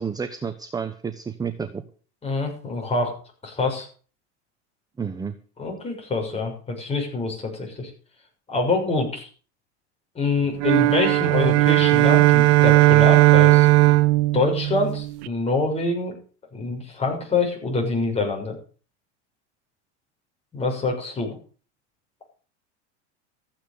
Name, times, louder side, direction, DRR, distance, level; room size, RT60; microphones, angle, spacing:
voice 1, 0.0-1.8 5.0-5.3, right 6 dB, 10° right, 10 dB, 0.8 m, -30 dB
voice 2, 2.2-3.1 3.4-3.9 5.6-7.9 8.5-9.3 10.1-13.7 14.3-16.1 16.5-18.6 20.5-21.4, left 3 dB, 15° left, 0 dB, 6.5 m, -25 dB
sound 1, 10.6-15.3, right 18 dB, 65° right, 0.9 m, -17 dB
14.5 x 8.9 x 6.8 m, 0.40 s
supercardioid pair, 135°, 36 cm